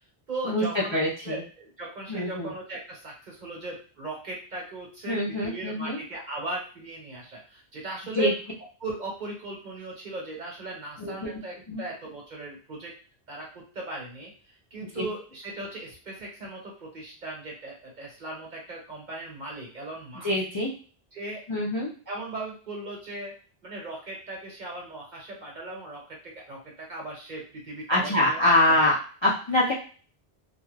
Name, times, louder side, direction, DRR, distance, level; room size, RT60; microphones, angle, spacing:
voice 1, 0.3-8.4 8.8-12.9 13.3-20.3 21.1-21.4 22.1-23.3 23.6-28.8, right 2 dB, 45° right, -3 dB, 1.0 m, -38 dB
voice 2, 0.9-1.4 2.1-2.5 5.1-6.0 8.2-8.3 11.0-11.1 11.7-11.8 15.0-15.1 20.2-20.7 21.5-21.9 27.9-29.0 29.2-29.7, left 1 dB, 35° left, -5 dB, 0.5 m, -24 dB
2.4 x 2.3 x 3.2 m, 0.39 s
omnidirectional pair, 1.1 m